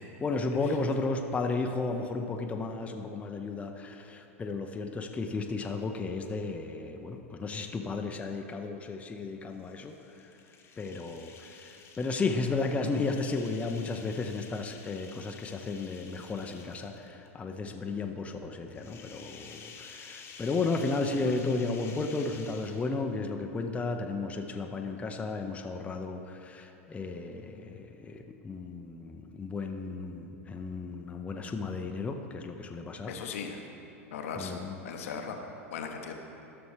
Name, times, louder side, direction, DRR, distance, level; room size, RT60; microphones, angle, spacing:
voice 1, 0.2-10.4 10.8-33.2 34.4-34.8, left 3 dB, 15° left, 4 dB, 0.5 m, -34 dB
sound 1, 9.5-17.3 18.7-23.1, left 5 dB, 35° left, 1.0 m, -51 dB
voice 2, 33.1-33.6 34.1-34.6 34.8-35.4 35.7-36.1, left 6 dB, 70° left, 4 dB, 0.8 m, -37 dB
13.0 x 6.0 x 3.3 m, 3.0 s
hypercardioid pair, 90°, 8 cm